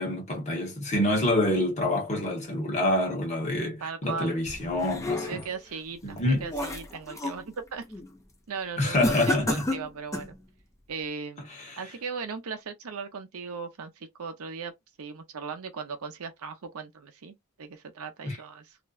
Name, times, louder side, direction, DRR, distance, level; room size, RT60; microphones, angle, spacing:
voice 1, 0.0-5.4 6.0-6.4 8.8-9.7 11.6-11.8 18.2-18.4, left 1 dB, 30° left, 1.0 m, -27 dB
voice 2, 3.8-4.3 5.3-7.8 8.5-10.4 10.9-11.5 11.8-14.7 15.0-18.8, right 5 dB, 70° right, 0.6 m, -37 dB
sound 1, 4.5-5.6 6.1-7.4 7.8-8.1 9.0-10.4, left 1 dB, 15° left, 0.5 m, -31 dB
2.5 x 2.1 x 2.3 m
head